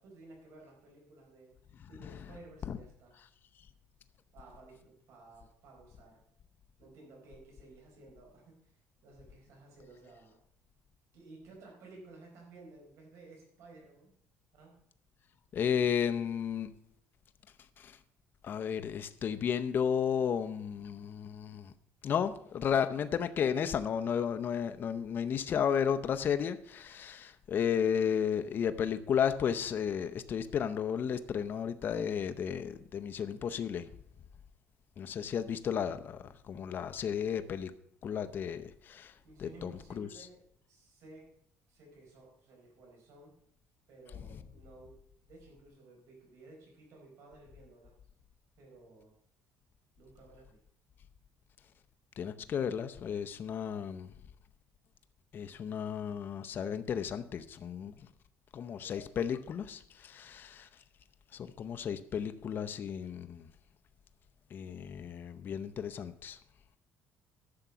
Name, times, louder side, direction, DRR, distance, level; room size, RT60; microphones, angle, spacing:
voice 1, 0.0-1.5 1.9-3.1 4.3-6.2 6.8-10.4 11.1-14.1 14.5-14.8 39.2-40.4 40.7-41.3 41.7-43.3 43.9-45.0 45.2-47.9 48.6-49.1 50.0-50.6, right 2 dB, 60° right, 4.7 m, -55 dB
voice 2, 15.5-16.7 17.8-18.0 18.4-21.7 22.0-33.9 35.0-37.7 38.0-39.1 39.4-40.1 52.2-54.1 55.3-57.9 58.5-60.7 61.3-63.5 64.5-66.4, left 8 dB, 40° left, 0.6 m, -33 dB
11.5 x 6.8 x 6.0 m
cardioid pair, 140°, 6 cm